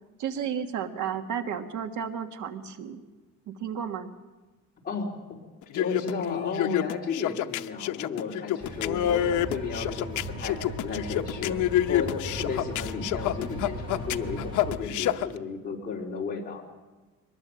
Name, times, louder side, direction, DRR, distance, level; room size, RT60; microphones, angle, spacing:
voice 1, 0.2-3.0 3.5-4.1, right 8 dB, 85° right, 7 dB, 1.7 m, -33 dB
sound 1, 5.6-15.3, left 13 dB, 85° left, 0.8 m, -27 dB
voice 2, 5.7-16.6, left 5 dB, 30° left, -2 dB, 3.9 m, -34 dB
sound 2, 8.6-14.7, right 1 dB, 20° right, 4.5 m, -38 dB
22.5 x 20.0 x 7.6 m, 1.2 s
cardioid pair, 165°, 29 cm